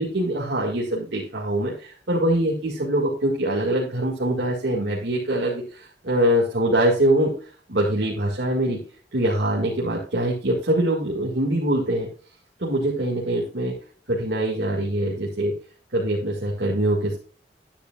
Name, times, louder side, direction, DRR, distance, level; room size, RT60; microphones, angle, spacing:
voice 1, 0.0-7.3 7.7-8.8 9.1-12.1 12.6-13.7 14.1-15.5 15.9-17.2, right 1 dB, 80° right, -4 dB, 2.0 m, -23 dB
10.0 x 10.0 x 2.4 m, 0.39 s
head